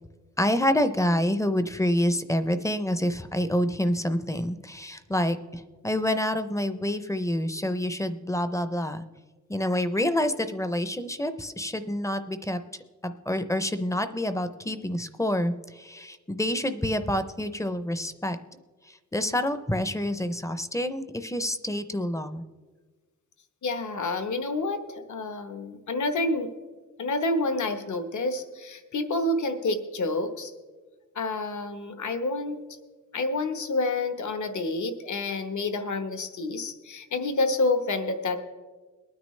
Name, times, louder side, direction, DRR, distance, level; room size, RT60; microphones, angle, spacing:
voice 1, 0.4-9.0 9.5-12.6 13.0-18.4 18.9-22.4, left 1 dB, 10° left, 10 dB, 0.5 m, -27 dB
voice 2, 23.6-26.5 27.0-30.5 31.1-32.6 33.1-38.4, left 2 dB, 75° left, 7 dB, 1.1 m, -28 dB
22.5 x 9.5 x 3.2 m, 1.4 s
wide cardioid pair, 170°, 30 cm